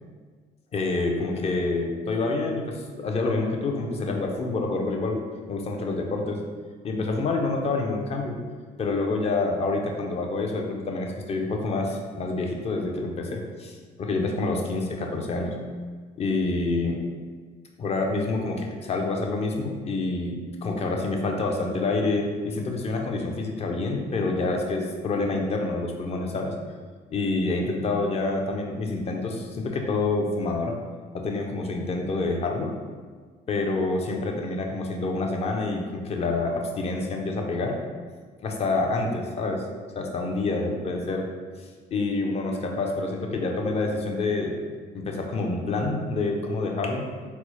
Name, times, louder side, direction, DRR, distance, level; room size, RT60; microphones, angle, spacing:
voice 1, 0.7-5.2 5.5-6.4 6.8-8.4 8.8-15.6 16.2-17.1 17.8-26.6 27.1-30.7 31.1-32.8 33.5-37.8 38.4-39.6 40.0-41.3 41.9-44.6 44.9-47.1, left 3 dB, 40° left, 2 dB, 0.5 m, -27 dB
4.2 x 2.0 x 3.0 m, 1.5 s
cardioid pair, 110°, 17 cm